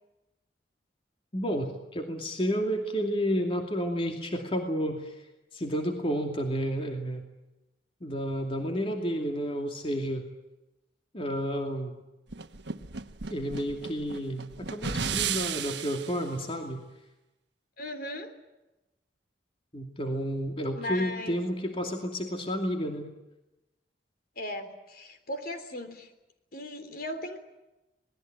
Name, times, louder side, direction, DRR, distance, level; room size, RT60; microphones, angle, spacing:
voice 1, 1.3-7.2 8.0-10.2 11.1-12.0 13.3-16.8 19.7-23.1, equal, 30° left, 3 dB, 2.6 m, -31 dB
sound 1, 12.3-16.2, right 6 dB, 75° right, 1.2 m, -34 dB
voice 2, 17.8-18.3 20.7-21.4 24.4-26.1 26.5-27.4, left 1 dB, 55° left, 7 dB, 3.6 m, -37 dB
27.0 x 20.0 x 9.1 m, 0.98 s
head